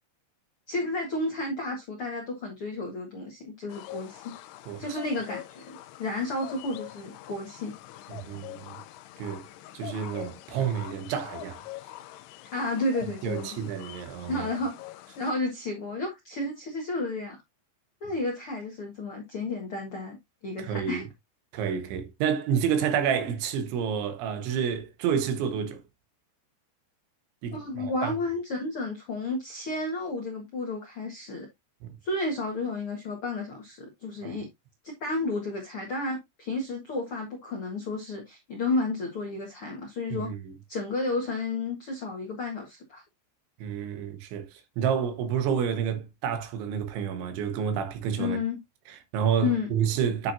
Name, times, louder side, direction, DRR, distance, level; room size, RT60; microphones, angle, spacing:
voice 1, 0.7-4.3 4.8-7.7 12.5-13.6 14.3-14.8 15.2-17.3 18.0-20.2 20.4-21.0 27.5-31.5 32.0-34.5 34.8-40.3 40.7-43.0 48.2-48.6 49.4-49.7, left 2 dB, 65° left, 1.4 m, -32 dB
sound 1, 3.7-15.3, left 15 dB, 80° left, 2.5 m, -44 dB
voice 2, 4.7-5.0 8.1-8.8 9.2-9.4 9.7-11.6 13.2-14.5 20.6-21.1 21.5-25.8 27.4-28.1 31.8-32.0 34.2-34.4 40.1-40.5 43.6-48.4 48.9-50.3, right 8 dB, 85° right, 3.8 m, -29 dB
9.7 x 6.2 x 2.6 m
omnidirectional pair, 5.2 m